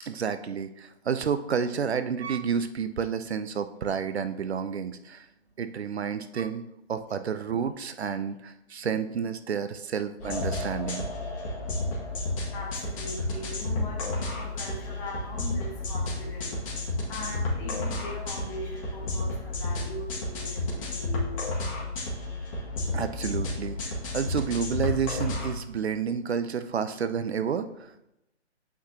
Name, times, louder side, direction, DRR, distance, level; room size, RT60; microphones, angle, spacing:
voice 1, 0.0-5.3 5.6-11.0 22.9-27.9, right 7 dB, 65° right, 11 dB, 0.6 m, -30 dB
sound 1, 10.2-25.5, left 2 dB, 30° left, 1.9 m, -32 dB
voice 2, 12.5-21.5, equal, 10° left, -4 dB, 0.8 m, -40 dB
8.4 x 6.0 x 2.8 m, 0.86 s
hypercardioid pair, 155°, 35 cm